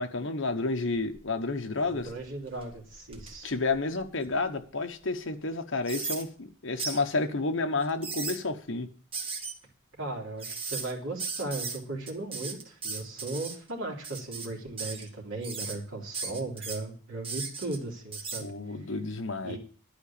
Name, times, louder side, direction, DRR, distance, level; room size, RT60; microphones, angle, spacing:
voice 1, 0.0-2.1 3.4-8.9 18.4-19.6, left 3 dB, 60° left, 6 dB, 1.1 m, -30 dB
sound 1, 1.1-1.4 1.9-4.5 5.0-5.1 5.8-6.2 6.8-7.0 7.8-8.4 9.1-9.5 10.4-10.9 11.2-11.8 12.1-13.5 14.0-14.5 14.8-15.1 15.4-15.7 16.1-16.8 17.2-17.8 18.1-18.4, right 5 dB, 25° right, 1.4 m, -36 dB
voice 2, 1.8-3.5 10.0-18.5 19.4-19.6, right 2 dB, 65° right, -1 dB, 3.1 m, -37 dB
11.5 x 5.1 x 8.5 m, 0.42 s
head